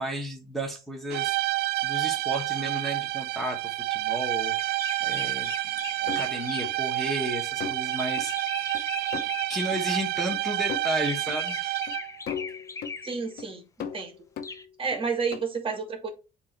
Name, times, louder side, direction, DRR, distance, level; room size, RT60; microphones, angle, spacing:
voice 1, 0.0-1.4 1.8-3.6 3.9-4.6 5.0-5.5 6.0-9.2 9.5-11.8, right 1 dB, ahead, 1.3 m, -33 dB
sound 1, 1.1-12.2, right 18 dB, 70° right, 0.4 m, -29 dB
sound 2, 4.6-6.9 7.9-9.9 11.0-13.3 14.4-14.6, left 4 dB, 20° left, 0.6 m, -40 dB
sound 3, 6.1-6.7 7.2-7.3 7.6-7.9 8.2-8.3 8.7-8.8 9.1-9.3 9.7-9.8 10.3-10.4 10.7-10.9 11.3-11.4 11.9-12.0 12.3-13.0 13.4-13.5 13.8-15.0 15.3-15.4, left 7 dB, 70° left, 0.8 m, -37 dB
voice 2, 13.0-14.1 14.8-16.1, right 5 dB, 30° right, 1.6 m, -31 dB
7.5 x 2.9 x 4.3 m
cardioid pair, 110°, 17 cm